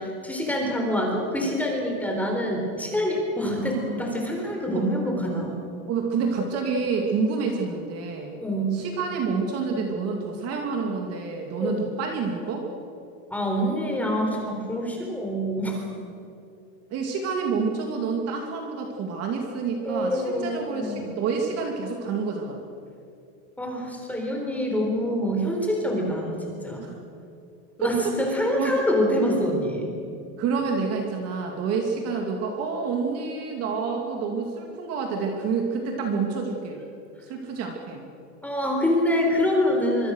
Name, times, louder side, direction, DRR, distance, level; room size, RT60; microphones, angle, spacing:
voice 1, 0.0-5.6 8.4-8.8 11.6-11.8 13.3-15.9 19.9-21.2 23.6-26.3 26.6-26.9 27.8-29.9 38.4-40.1, equal, 5° left, 1 dB, 3.9 m, -26 dB
voice 2, 3.5-4.1 4.7-4.9 5.9-8.4 8.7-12.7 16.9-22.6 26.8-26.9 27.8-28.1 28.6-28.7 30.4-36.8 37.2-38.0, right 5 dB, 35° right, 2 dB, 2.7 m, -28 dB
25.5 x 24.0 x 6.5 m, 2.5 s
supercardioid pair, 170°, 45 cm